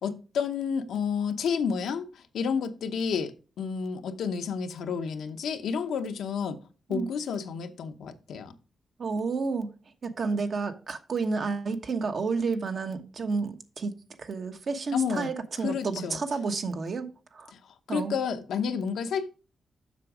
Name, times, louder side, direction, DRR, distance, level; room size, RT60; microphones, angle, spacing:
voice 1, 0.0-6.6 6.9-8.5 14.9-15.3 15.6-16.2 17.5-17.6 17.9-19.3, left 6 dB, 85° left, 0.8 m, -30 dB
voice 2, 9.0-9.7 10.0-13.9 14.2-17.5 17.9-18.1, right 4 dB, 60° right, 1.2 m, -30 dB
7.5 x 6.2 x 4.8 m
cardioid pair, 80°, 0 cm